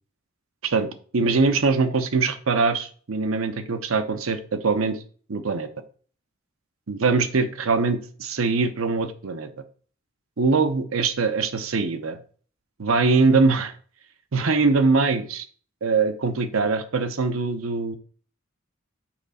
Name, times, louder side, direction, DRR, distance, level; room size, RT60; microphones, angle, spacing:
voice 1, 0.6-5.0 5.3-5.7 6.9-9.5 10.4-12.2 12.8-13.7 14.3-15.5 15.8-18.0, right 4 dB, 85° right, 10 dB, 0.8 m, -22 dB
5.8 x 5.1 x 4.1 m, 0.44 s
head